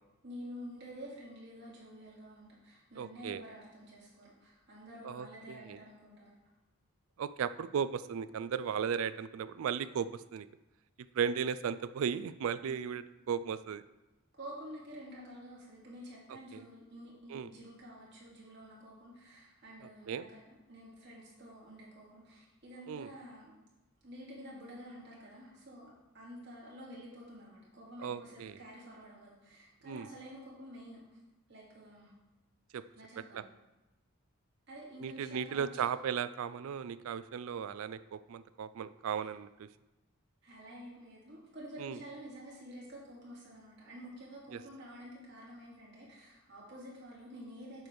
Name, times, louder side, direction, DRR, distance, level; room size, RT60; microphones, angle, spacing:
voice 1, 0.2-6.3 12.6-12.9 14.4-23.6 24.0-25.9 26.1-31.2 31.5-32.1 32.9-33.4 34.7-35.8 39.1-39.2 40.4-47.9, equal, 50° right, -5 dB, 2.4 m, -49 dB
voice 2, 3.0-3.4 5.0-5.8 7.2-10.5 11.1-13.8 16.5-16.6 17.3-17.5 20.1-20.2 22.9-23.1 28.0-28.6 29.8-30.1 32.7-32.8 33.3-33.4 35.0-39.7 41.8-42.0 44.5-44.6, right 7 dB, 70° right, 15 dB, 0.3 m, -36 dB
8.8 x 3.4 x 6.1 m, 1.0 s
head